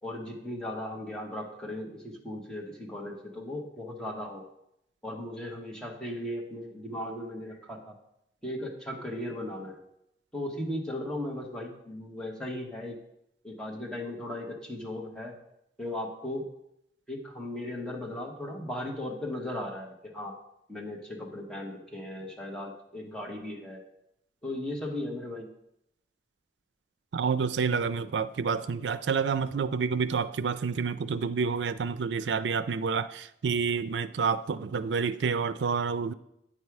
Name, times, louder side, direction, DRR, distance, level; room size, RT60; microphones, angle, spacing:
voice 1, 0.0-4.4 5.0-7.9 8.4-9.8 10.3-13.0 13.4-15.3 15.8-16.5 17.1-20.4 20.7-23.8 24.4-25.5, left 1 dB, 5° left, -2 dB, 1.4 m, -37 dB
voice 2, 27.1-36.1, right 5 dB, 80° right, 14 dB, 0.4 m, -29 dB
9.1 x 5.4 x 4.7 m, 0.78 s
head